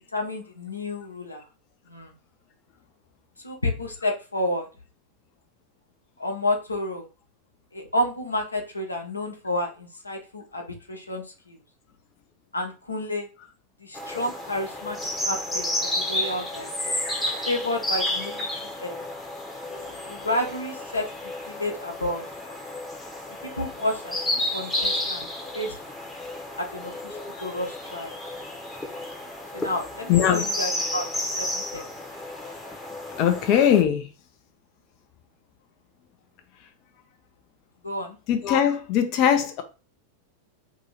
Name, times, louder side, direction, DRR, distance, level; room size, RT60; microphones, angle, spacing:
voice 1, 0.0-1.4 1.9-2.1 3.4-4.7 6.2-7.0 7.7-11.6 12.5-13.3 13.8-15.0 15.2-16.7 17.5-19.1 20.1-22.3 23.6-24.2 24.5-25.3 25.5-25.8 26.6-28.2 29.5-31.1 31.3-31.8 37.8-38.2, left 1 dB, 80° left, 0.9 m, -30 dB
sound 1, 13.9-33.8, left 1 dB, 10° left, 1.0 m, -31 dB
voice 2, 19.7-20.0 30.1-30.4 33.2-34.1 38.3-39.6, left 9 dB, 40° left, 0.5 m, -21 dB
2.9 x 2.7 x 4.0 m
figure-of-eight pair, 90°, 0 cm